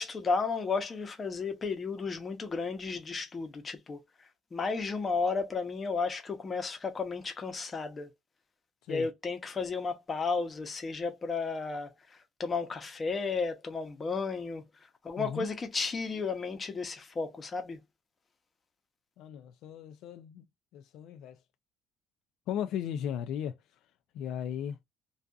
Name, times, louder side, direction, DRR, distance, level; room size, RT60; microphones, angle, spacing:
voice 1, 0.0-4.0 4.5-8.1 8.9-14.6 15.0-17.8, left 4 dB, 25° left, 0.7 m, -33 dB
voice 2, 15.2-15.5 19.2-20.5 20.7-21.4 22.5-23.6 24.1-24.8, left 9 dB, 70° left, 0.3 m, -36 dB
2.6 x 2.3 x 2.3 m
cardioid pair, 140°, 0 cm